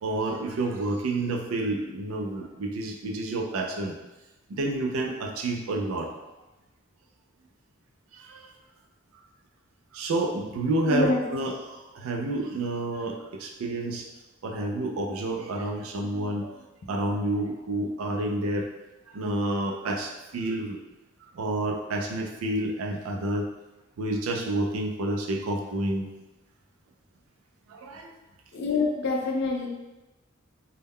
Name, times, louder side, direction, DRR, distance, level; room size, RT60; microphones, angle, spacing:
voice 1, 0.0-3.9 4.5-6.1 8.1-8.5 9.9-14.1 14.4-16.6 16.9-18.7 19.1-20.8 21.3-23.5 24.0-26.1 27.7-28.1, right 2 dB, 85° right, 2 dB, 0.4 m, -29 dB
voice 2, 10.9-11.2 28.5-29.7, left 3 dB, 55° left, -1 dB, 0.4 m, -25 dB
2.2 x 2.1 x 3.4 m, 1.0 s
head